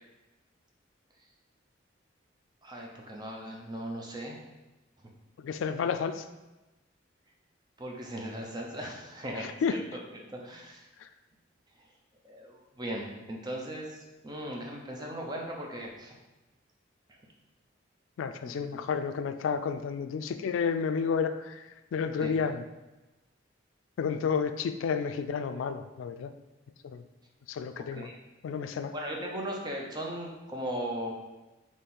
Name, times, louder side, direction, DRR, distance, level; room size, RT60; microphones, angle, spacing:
voice 1, 2.6-4.4 5.0-5.1 7.8-10.0 10.3-10.8 12.2-16.1 18.4-18.8 22.2-22.3 27.8-28.2 28.9-31.1, right 1 dB, 20° right, -1 dB, 0.6 m, -38 dB
voice 2, 5.4-6.2 9.6-9.8 18.2-21.6 21.9-22.6 24.0-26.3 26.9-27.0 27.5-28.1 28.4-28.9, left 6 dB, 90° left, 9 dB, 0.3 m, -31 dB
4.3 x 3.0 x 3.8 m, 1.1 s
head